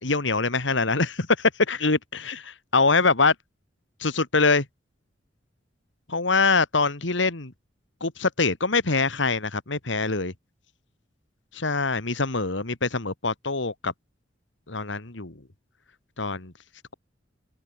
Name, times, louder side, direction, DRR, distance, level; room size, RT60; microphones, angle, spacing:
voice 1, 0.0-2.2 2.7-3.3 4.0-4.6 6.1-7.5 8.0-10.3 11.5-13.9 14.7-15.3 16.2-16.5, left 3 dB, 70° left, 2.1 m, -23 dB
open air
head